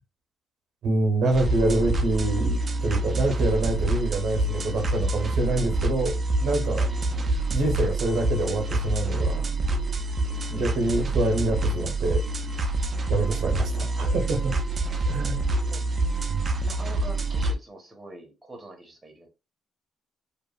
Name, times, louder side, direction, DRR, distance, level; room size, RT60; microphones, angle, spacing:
voice 1, 0.8-6.9 7.5-9.5 10.5-12.2 13.1-14.6 15.0-15.4 16.3-16.5, right 2 dB, 70° right, 0.8 m, -26 dB
sound 1, 1.3-17.6, right 2 dB, 40° right, 0.4 m, -26 dB
voice 2, 14.8-15.2 15.7-15.9 16.6-19.3, right 2 dB, 15° right, 1.0 m, -44 dB
2.9 x 2.4 x 2.3 m
cardioid pair, 90°, 0 cm